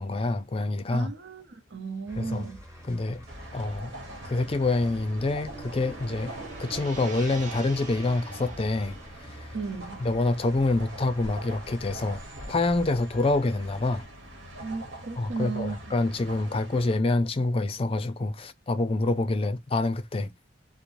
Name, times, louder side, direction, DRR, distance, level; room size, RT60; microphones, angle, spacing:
voice 1, 0.0-1.1 2.2-2.4 2.9-3.2 3.5-3.9 4.3-6.3 6.6-9.0 9.3-9.5 10.0-12.2 12.5-14.0 15.2-20.3, left 2 dB, 30° left, 0.4 m, -26 dB
voice 2, 0.9-2.6 9.5-10.0 14.6-15.8, right 4 dB, 65° right, 0.6 m, -34 dB
sound 1, 2.0-14.0, equal, 15° right, 1.2 m, -48 dB
sound 2, 3.3-17.0, right 1 dB, 85° right, 1.1 m, -44 dB
Gong, 4.5-12.8, right 4 dB, 40° right, 0.9 m, -45 dB
3.0 x 2.1 x 2.5 m
head